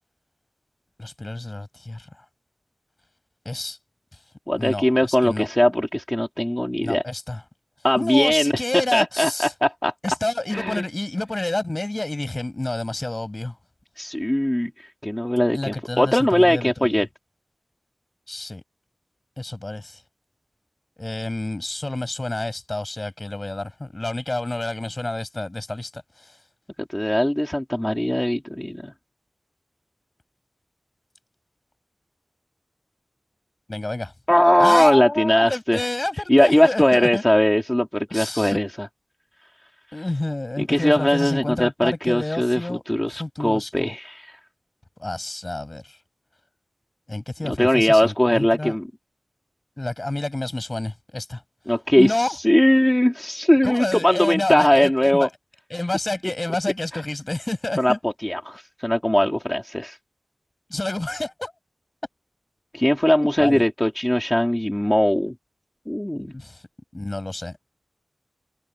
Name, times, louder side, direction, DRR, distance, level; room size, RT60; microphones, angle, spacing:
voice 1, 1.0-2.1 3.5-3.8 4.6-5.5 6.8-7.4 8.0-9.5 10.0-13.6 15.5-17.1 18.3-18.6 19.4-20.0 21.0-26.4 33.7-34.1 34.6-37.2 38.1-38.6 39.9-42.8 43.1-43.9 45.0-46.0 47.1-48.8 49.8-51.4 52.0-52.4 53.6-55.3 55.7-58.0 60.7-61.5 63.2-63.6 66.3-66.6 66.9-67.6, left 2 dB, 35° left, 7.2 m, -29 dB
voice 2, 4.5-7.0 7.8-9.9 10.5-10.8 14.0-17.1 26.8-28.9 34.3-35.8 36.3-38.9 40.6-44.4 47.4-48.9 51.7-55.3 57.8-60.0 62.7-65.3 65.9-66.3, left 1 dB, 10° left, 3.5 m, -20 dB
wide cardioid pair, 55°, 0 cm